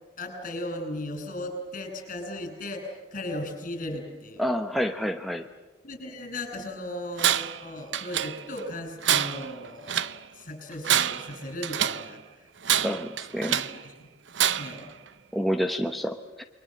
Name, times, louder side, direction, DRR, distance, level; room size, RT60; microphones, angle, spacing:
voice 1, 0.2-4.5 5.8-12.2 12.6-12.9 13.5-14.1 14.6-14.9, left 1 dB, 45° left, 5 dB, 6.6 m, -37 dB
voice 2, 4.4-5.4 12.8-13.6 15.3-16.4, equal, ahead, 5 dB, 0.9 m, -28 dB
Tools, 7.2-7.6 7.9-8.6 9.0-10.2 10.7-12.1 12.6-13.8 14.3-14.9, right 10 dB, 70° right, 0.8 m, -26 dB
29.0 x 22.5 x 7.7 m, 1.2 s
head